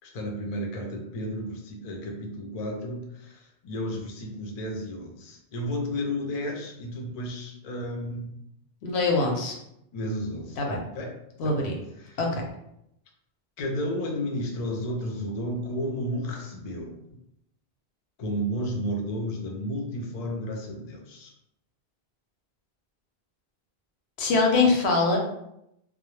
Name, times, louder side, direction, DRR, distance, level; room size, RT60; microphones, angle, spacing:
voice 1, 0.0-8.4 9.9-10.6 10.9-11.1 11.4-11.5 12.0-12.2 13.6-17.0 18.2-21.3, equal, 50° left, 1 dB, 0.5 m, -32 dB
voice 2, 8.8-9.5 10.6-10.8 11.4-11.7 12.2-12.4 24.2-25.2, left 3 dB, 80° left, 0 dB, 0.9 m, -23 dB
2.1 x 2.0 x 3.0 m, 0.80 s
omnidirectional pair, 1.1 m